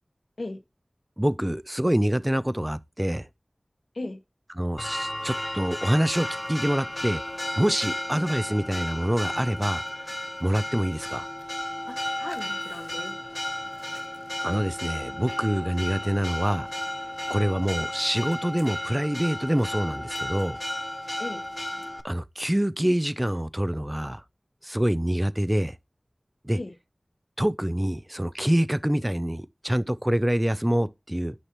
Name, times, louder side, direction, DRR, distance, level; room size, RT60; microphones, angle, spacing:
voice 1, 1.2-3.3 4.6-7.2 7.6-9.8 10.4-11.3 14.4-16.7 17.3-20.6 22.0-24.2 24.6-25.7 26.4-26.6 27.4-31.3, right 1 dB, 15° right, 0.5 m, -26 dB
Church bell, 4.8-22.0, left 1 dB, 25° left, 0.7 m, -33 dB
voice 2, 11.9-13.1 21.2-21.4 26.6-26.7, left 2 dB, 75° left, 1.2 m, -37 dB
9.8 x 5.9 x 3.0 m
wide cardioid pair, 40°, 0 cm